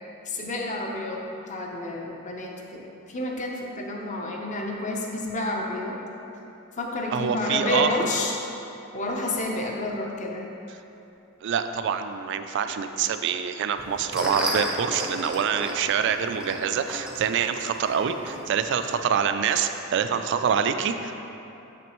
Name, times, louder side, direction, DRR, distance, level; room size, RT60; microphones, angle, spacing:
voice 1, 0.2-6.0 6.8-8.4 8.9-10.4, left 2 dB, 35° left, 0 dB, 0.6 m, -30 dB
voice 2, 7.1-7.9 11.4-21.1, right 7 dB, 55° right, 8 dB, 0.3 m, -25 dB
sound 1, 13.8-19.0, equal, 5° right, 0.5 m, -34 dB
7.0 x 6.0 x 3.0 m, 2.9 s
head